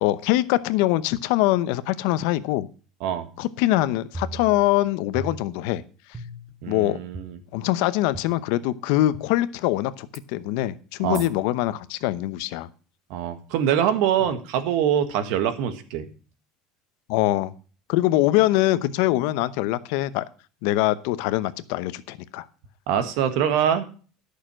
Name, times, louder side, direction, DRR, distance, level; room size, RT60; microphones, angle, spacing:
voice 1, 0.0-2.7 3.4-5.8 6.7-7.0 7.5-12.7 17.1-17.5 17.9-20.2 20.6-22.5, left 16 dB, 75° left, 15 dB, 0.8 m, -23 dB
sound 1, 4.1-4.8 5.1-5.7 6.1-6.6 7.1-7.2 8.1-8.2 9.1-9.2 10.1-10.2 11.1-11.3, right 2 dB, 15° right, 1.3 m, -37 dB
voice 2, 6.6-7.4 11.0-11.2 13.1-16.1 22.9-23.9, right 9 dB, 70° right, 10 dB, 1.7 m, -24 dB
11.5 x 6.6 x 6.2 m, 0.38 s
cardioid pair, 145°, 0 cm